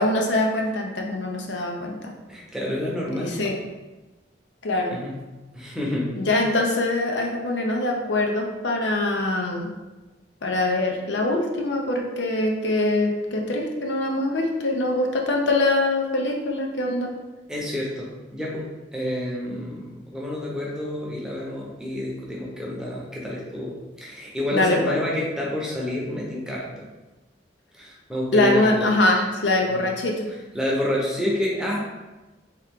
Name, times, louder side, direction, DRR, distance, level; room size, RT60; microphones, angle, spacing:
voice 1, 0.0-2.1 3.1-3.5 4.6-4.9 6.1-9.7 10.4-17.1 24.5-24.9 28.3-30.3, left 2 dB, 80° left, 1 dB, 0.6 m, -23 dB
voice 2, 2.3-3.5 4.9-5.1 5.5-6.1 17.5-23.7 24.0-26.9 27.7-28.9 29.7-29.8 30.5-31.8, left 1 dB, 5° right, -4 dB, 0.7 m, -28 dB
3.4 x 3.0 x 3.6 m, 1.1 s
head